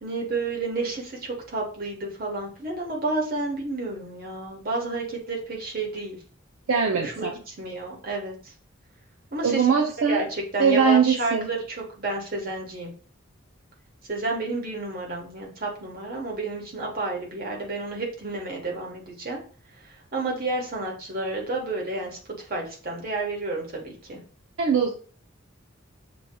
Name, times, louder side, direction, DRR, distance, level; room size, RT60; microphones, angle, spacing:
voice 1, 0.0-6.2 7.0-8.3 9.3-12.9 14.1-19.4 20.1-22.2 22.5-24.2, right 2 dB, 45° right, -1 dB, 1.3 m, -31 dB
voice 2, 6.7-7.3 9.4-10.3 10.6-11.5 24.6-24.9, right 6 dB, 75° right, 1 dB, 0.6 m, -21 dB
6.8 x 2.8 x 2.3 m, 0.40 s
head